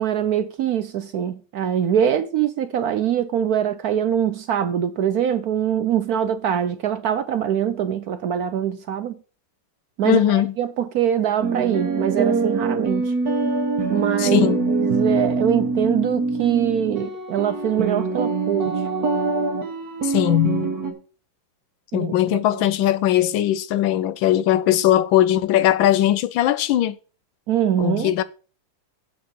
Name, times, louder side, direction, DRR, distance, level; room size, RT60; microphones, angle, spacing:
voice 1, 0.0-9.2 10.0-13.1 13.9-18.8 21.9-22.7 27.5-28.1, right 9 dB, 70° right, 0.9 m, -23 dB
voice 2, 10.0-10.5 14.2-14.7 20.0-20.7 21.9-27.0 27.8-28.2, left 12 dB, 90° left, 1.4 m, -19 dB
sound 1, 11.4-20.9, right 3 dB, 55° right, 1.8 m, -24 dB
8.1 x 5.1 x 6.9 m
omnidirectional pair, 2.1 m